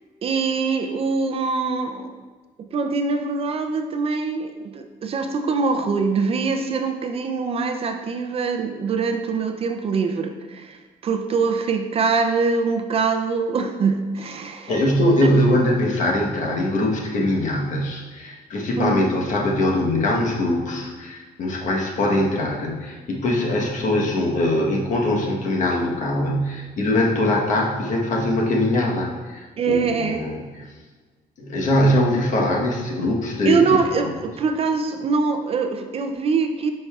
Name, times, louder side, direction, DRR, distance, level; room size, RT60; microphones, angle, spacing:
voice 1, 0.2-2.1 2.7-14.8 18.8-19.0 29.6-30.3 33.4-36.7, right 4 dB, 40° right, 5 dB, 0.4 m, -23 dB
voice 2, 14.7-30.6 31.4-33.8 34.0-34.1, left 1 dB, 50° left, -1 dB, 1.1 m, -22 dB
10.0 x 5.3 x 2.4 m, 1.4 s
cardioid pair, 175°, 16 cm